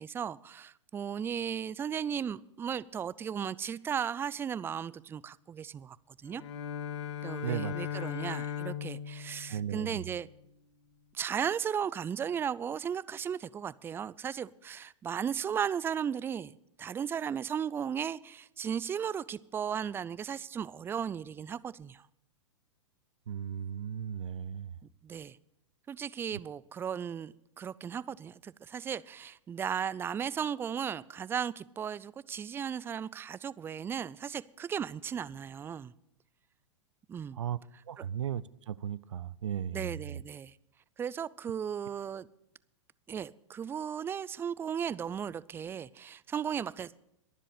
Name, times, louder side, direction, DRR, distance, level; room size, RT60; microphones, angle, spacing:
voice 1, 0.0-6.0 6.2-6.4 7.2-10.3 11.1-22.0 25.0-25.4 25.9-35.9 37.1-37.4 38.0-38.1 39.7-40.5 41.0-42.3 43.1-46.9, right 8 dB, 15° right, 20 dB, 0.4 m, -36 dB
Bowed string instrument, 6.3-10.4, left 9 dB, 65° left, 1.3 m, -38 dB
voice 2, 7.4-7.7 9.5-10.0 23.3-24.7 37.4-37.6 37.9-40.2, right 9 dB, 80° right, 19 dB, 0.6 m, -36 dB
22.0 x 7.5 x 5.0 m, 0.80 s
hypercardioid pair, 110°, 16 cm